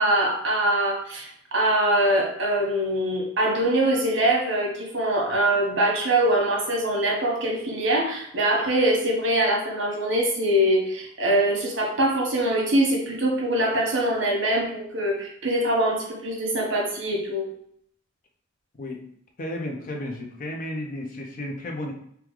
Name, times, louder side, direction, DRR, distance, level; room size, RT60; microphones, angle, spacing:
voice 1, 0.0-17.5, right 1 dB, 65° right, -1 dB, 1.0 m, -23 dB
voice 2, 19.4-21.9, left 1 dB, 45° left, 2 dB, 0.5 m, -33 dB
3.6 x 2.2 x 3.0 m, 0.67 s
head